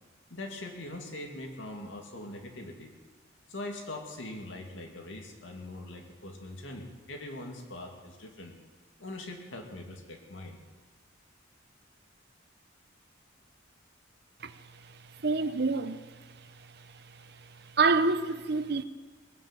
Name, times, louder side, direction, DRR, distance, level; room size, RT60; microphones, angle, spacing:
voice 1, 0.3-2.9 3.5-8.5 9.0-10.6, left 1 dB, 75° left, 2.4 m, -42 dB
voice 2, 15.2-16.0 17.8-18.8, right 4 dB, 55° right, 0.7 m, -26 dB
19.5 x 9.1 x 7.6 m
head